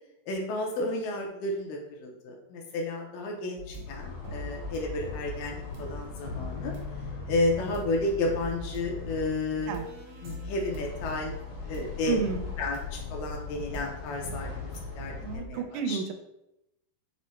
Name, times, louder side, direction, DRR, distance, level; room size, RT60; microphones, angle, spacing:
voice 1, 0.3-6.7 7.3-9.8 10.2-11.3 11.6-12.2 12.6-16.0, left 2 dB, 80° left, 1 dB, 2.1 m, -32 dB
sound 1, 3.6-15.5, left 2 dB, 65° right, 1.8 m, -41 dB
sound 2, 3.8-9.3 10.7-15.4, left 4 dB, 60° left, 2.7 m, -41 dB
voice 2, 12.1-12.5 15.2-16.1, right 7 dB, 85° right, 6 dB, 2.4 m, -31 dB
6.1 x 2.1 x 4.1 m, 0.86 s
omnidirectional pair, 4.2 m